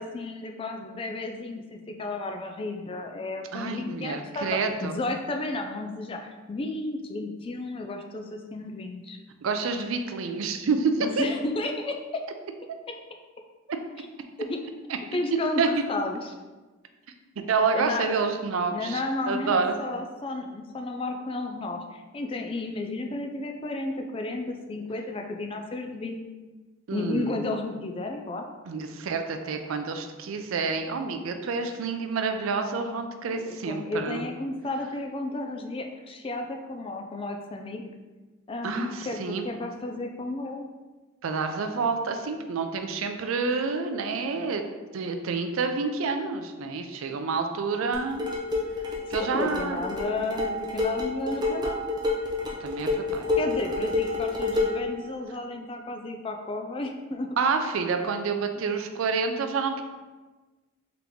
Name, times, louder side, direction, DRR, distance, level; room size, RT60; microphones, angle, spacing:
voice 1, 0.0-9.2 11.0-12.2 12.9-13.0 14.5-14.6 15.1-16.3 17.7-18.2 18.7-26.2 26.9-28.7 33.3-37.8 38.5-40.7 49.2-51.8 53.4-57.4, left 2 dB, 25° left, 4 dB, 0.3 m, -33 dB
voice 2, 3.5-4.9 9.4-11.2 15.1-15.2 15.6-15.7 17.5-19.7 26.9-27.3 28.7-34.2 38.6-39.5 41.2-44.6 44.9-48.3 49.1-49.8 52.6-53.2 57.4-59.8, right 4 dB, 85° right, 6 dB, 0.4 m, -28 dB
sound 1, 47.9-54.9, left 3 dB, 20° right, 0.6 m, -29 dB
3.8 x 2.9 x 3.5 m, 1.3 s
head